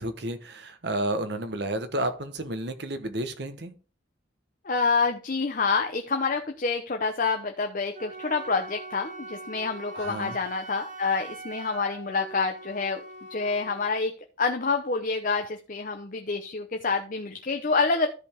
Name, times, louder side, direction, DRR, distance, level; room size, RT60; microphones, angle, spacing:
voice 1, 0.0-3.8 9.9-10.4, right 1 dB, 60° right, 1.2 m, -31 dB
voice 2, 4.6-13.0 13.3-18.1, left 4 dB, 45° left, 0.8 m, -27 dB
Wind instrument woodwind instrument, 7.9-14.0, right 2 dB, 45° right, 1.9 m, -42 dB
13.5 x 5.2 x 3.6 m
head